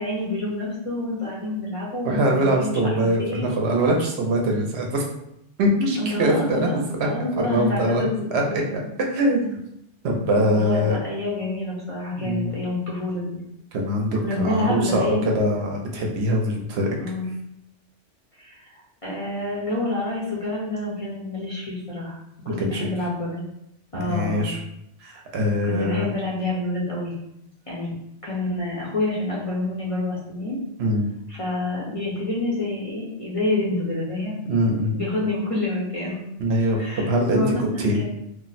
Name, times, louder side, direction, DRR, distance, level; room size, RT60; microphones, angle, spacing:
voice 1, 0.0-3.6 5.8-8.9 10.3-13.2 14.2-15.2 17.0-17.3 18.4-18.7 19.0-22.2 22.4-23.4 23.9-24.5 25.6-27.1 27.7-27.9 28.2-30.6 31.3-34.4 34.9-36.2 36.7-38.0, left 2 dB, 35° left, -6 dB, 0.6 m, -28 dB
voice 2, 2.0-5.0 5.6-7.0 7.4-8.0 8.3-8.4 9.0-9.6 10.0-11.0 12.2-12.5 13.7-16.9 22.6-22.7 23.9-24.6 25.0-26.1 30.8-31.1 34.5-34.9 36.4-37.4 37.8-38.0, equal, 70° right, 1 dB, 0.8 m, -23 dB
2.5 x 2.0 x 3.9 m, 0.80 s
omnidirectional pair, 1.2 m